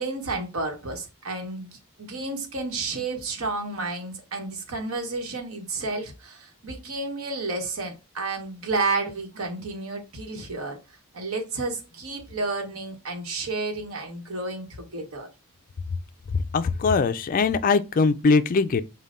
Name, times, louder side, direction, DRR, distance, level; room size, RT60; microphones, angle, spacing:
voice 1, 0.0-10.8 11.1-15.3, right 3 dB, 70° right, 1.1 m, -31 dB
voice 2, 16.3-18.8, left 4 dB, 40° left, 0.3 m, -21 dB
5.3 x 2.2 x 2.4 m
head